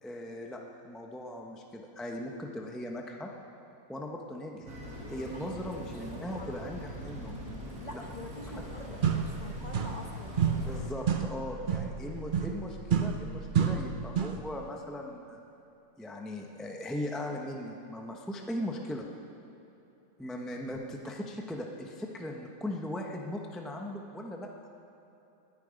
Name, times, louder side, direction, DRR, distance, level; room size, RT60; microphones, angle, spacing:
voice 1, 0.0-3.3 3.9-4.8 5.1-7.4 7.9-8.0 10.6-15.4 16.0-19.1 20.2-24.5, left 1 dB, ahead, 1 dB, 0.4 m, -39 dB
sound 1, 4.7-10.8, equal, 55° right, 2.5 m, -42 dB
voice 2, 5.8-6.6 7.8-10.8, left 1 dB, 30° left, 1 dB, 0.8 m, -46 dB
sound 2, 8.6-8.7 9.0-10.1 10.4-14.5, right 7 dB, 75° right, 0.4 m, -30 dB
20.0 x 9.8 x 5.2 m, 3.0 s
omnidirectional pair, 2.0 m